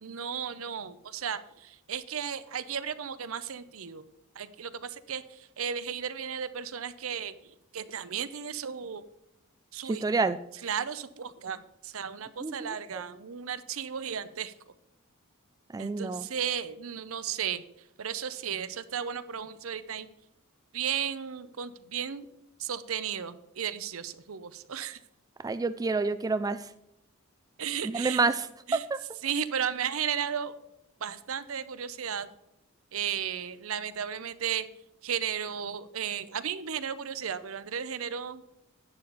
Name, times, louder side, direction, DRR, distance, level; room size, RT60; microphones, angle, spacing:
voice 1, 0.0-4.0 4.4-5.2 5.6-7.3 7.7-9.0 9.7-10.0 10.6-11.6 11.8-14.5 15.8-17.6 18.0-20.1 20.7-22.3 22.6-25.0 27.6-28.2 28.7-28.8 29.2-30.5 31.0-32.3 32.9-34.7 35.0-38.4, right 8 dB, 70° right, 14 dB, 0.7 m, -34 dB
voice 2, 9.8-10.4 12.4-13.0 15.7-16.3 25.4-26.7 27.8-29.0, right 4 dB, 15° right, 12 dB, 0.3 m, -29 dB
11.5 x 8.4 x 4.0 m, 0.85 s
head